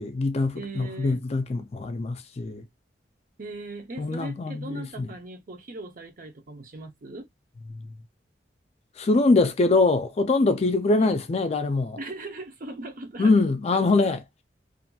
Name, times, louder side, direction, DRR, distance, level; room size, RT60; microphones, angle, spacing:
voice 1, 0.0-2.6 4.0-5.1 7.7-7.9 9.0-12.0 13.2-14.2, left 3 dB, 35° left, 0.4 m, -23 dB
voice 2, 0.5-1.2 3.4-7.3 10.9-11.2 12.0-13.3 13.7-14.2, right 2 dB, 50° right, 0.7 m, -39 dB
2.7 x 2.5 x 2.3 m
head